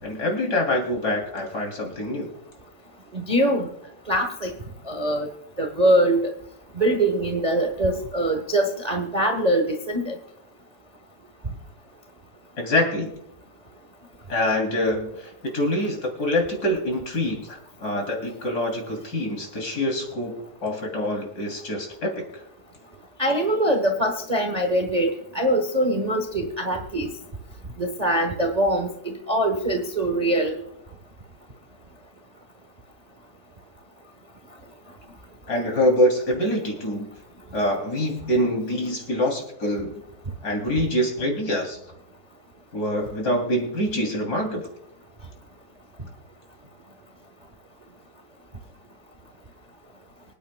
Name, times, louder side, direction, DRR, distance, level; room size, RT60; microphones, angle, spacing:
voice 1, 0.0-2.3 12.6-13.1 14.3-22.2 35.5-37.1 37.5-40.0 40.4-41.8 42.7-44.7, left 1 dB, 55° left, 1 dB, 3.5 m, -25 dB
voice 2, 3.1-3.7 4.1-4.5 4.9-5.3 5.6-6.2 6.8-10.2 23.2-27.1 27.8-30.6, right 1 dB, 30° right, 4 dB, 0.9 m, -23 dB
25.0 x 9.5 x 2.2 m, 0.77 s
omnidirectional pair, 2.1 m